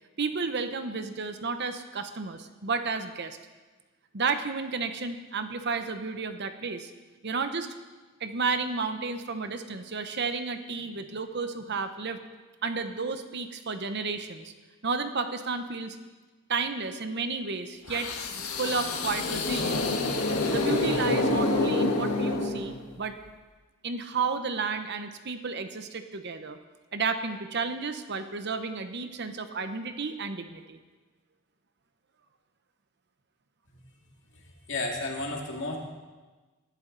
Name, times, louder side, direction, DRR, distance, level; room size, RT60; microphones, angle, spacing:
voice 1, 0.2-3.4 4.1-6.9 7.2-7.7 8.2-12.2 12.6-14.5 14.8-16.0 16.5-18.1 18.4-19.9 20.5-23.2 23.8-26.6 26.9-30.8, right 4 dB, 50° right, 8 dB, 0.9 m, -32 dB
sound 1, 17.9-23.0, left 2 dB, 85° left, 1.6 m, -27 dB
voice 2, 34.7-35.8, left 2 dB, 55° left, 0 dB, 2.3 m, -32 dB
19.5 x 11.5 x 4.0 m, 1.3 s
head